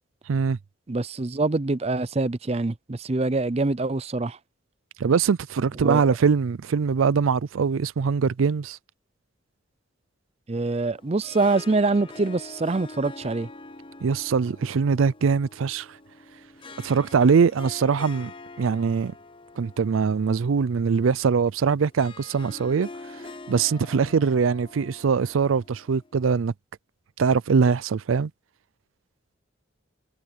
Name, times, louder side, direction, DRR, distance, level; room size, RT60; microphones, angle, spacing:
voice 1, 0.3-0.6 5.0-8.8 14.0-15.9 16.8-18.3 18.6-19.1 19.6-22.9 23.5-26.5 27.2-28.3, right 5 dB, 90° right, 0.4 m, -22 dB
voice 2, 0.9-4.4 5.8-6.0 10.5-13.5, right 3 dB, 30° right, 0.5 m, -25 dB
Harp, 10.9-26.2, left 3 dB, 25° left, 0.9 m, -45 dB
head